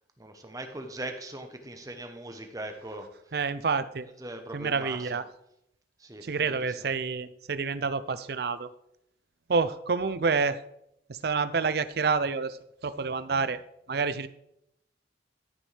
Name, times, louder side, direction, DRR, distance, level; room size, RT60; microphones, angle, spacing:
voice 1, 0.2-3.3 4.2-5.2 6.0-6.9, right 1 dB, 20° right, 6 dB, 1.0 m, -40 dB
voice 2, 3.3-4.1 4.5-5.2 6.2-8.7 9.5-10.6 11.1-13.6 13.9-14.3, right 4 dB, 60° right, 14 dB, 0.5 m, -28 dB
13.5 x 6.2 x 3.4 m, 0.78 s
head